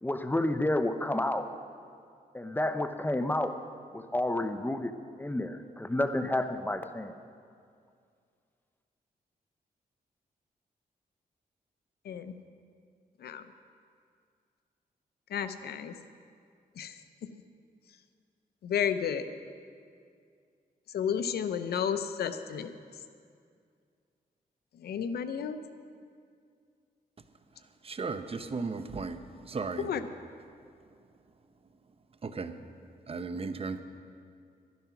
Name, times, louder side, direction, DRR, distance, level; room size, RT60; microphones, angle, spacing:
voice 1, 0.0-1.5 2.3-3.6 3.9-7.1, left 1 dB, 10° left, 9 dB, 0.6 m, -30 dB
voice 2, 15.3-15.9 16.8-16.9 17.2-17.3 18.6-19.2 20.9-22.7 24.8-25.6 29.8-30.1, left 8 dB, 85° left, 10 dB, 0.6 m, -32 dB
voice 3, 27.8-29.2 29.5-29.9 32.2-32.5 33.1-33.8, right 4 dB, 35° right, 10 dB, 0.7 m, -35 dB
11.5 x 11.0 x 5.8 m, 2.3 s
cardioid pair, 85°, 16 cm